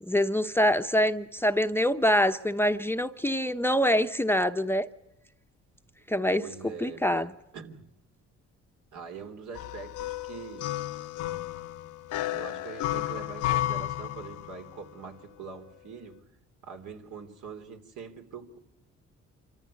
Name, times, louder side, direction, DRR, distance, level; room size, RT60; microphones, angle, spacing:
voice 1, 0.0-4.9 6.1-6.4 6.8-7.3, equal, 10° left, 0.8 m, -25 dB
voice 2, 6.3-7.3 7.5-7.9 8.9-10.7 12.3-16.2 16.6-18.6, right 5 dB, 75° right, 3.5 m, -43 dB
sound 1, 9.6-14.8, left 14 dB, 85° left, 0.9 m, -32 dB
26.5 x 14.5 x 9.9 m
cardioid pair, 90°, 30 cm